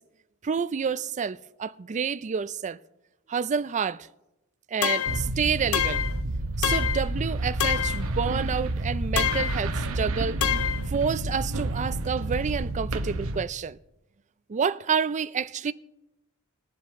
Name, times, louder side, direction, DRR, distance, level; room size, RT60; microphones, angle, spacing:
voice 1, 0.4-2.8 3.3-4.1 4.7-6.0 6.6-10.4 10.9-13.8 14.5-15.7, right 6 dB, 35° right, 0.4 m, -29 dB
sound 1, 4.8-5.3 5.7-6.2 6.6-7.1 7.6-8.0 9.2-9.6 10.4-10.8, left 9 dB, 70° left, 0.5 m, -26 dB
sound 2, 5.1-13.4, right 2 dB, 65° right, 0.9 m, -29 dB
21.0 x 7.5 x 3.6 m
head